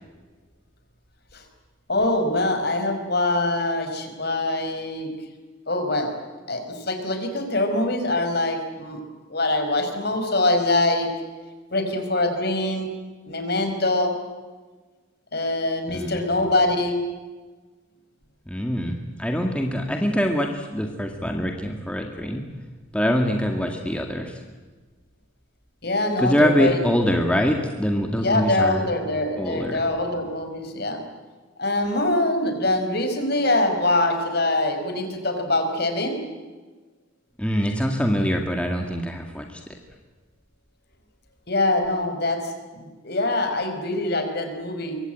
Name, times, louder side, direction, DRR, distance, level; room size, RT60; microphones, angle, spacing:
voice 1, 1.9-5.1 5.7-6.1 6.5-9.0 9.3-11.1 11.7-12.9 13.3-14.1 15.3-17.0 25.8-26.8 27.1-27.2 28.2-31.0 31.6-36.2 41.5-45.0, left 2 dB, 55° left, 6 dB, 5.1 m, -24 dB
voice 2, 18.5-22.4 22.9-24.3 26.2-28.9 29.4-29.8 37.4-39.6, equal, 5° left, 2 dB, 2.1 m, -24 dB
25.5 x 23.5 x 9.1 m, 1.3 s
head